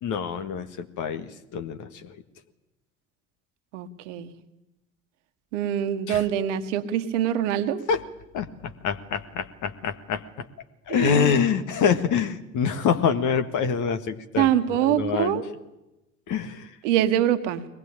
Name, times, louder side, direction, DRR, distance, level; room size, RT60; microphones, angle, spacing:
voice 1, 0.0-2.1 6.1-6.2 7.9-8.0 8.3-10.4 10.9-15.4 16.3-16.7, left 7 dB, 50° left, 8 dB, 1.7 m, -26 dB
voice 2, 3.7-4.3 5.5-7.8 10.9-11.2 14.4-15.4 16.8-17.7, right 11 dB, 65° right, 10 dB, 1.6 m, -24 dB
23.0 x 19.5 x 8.8 m, 0.96 s
figure-of-eight pair, 50°, 39 cm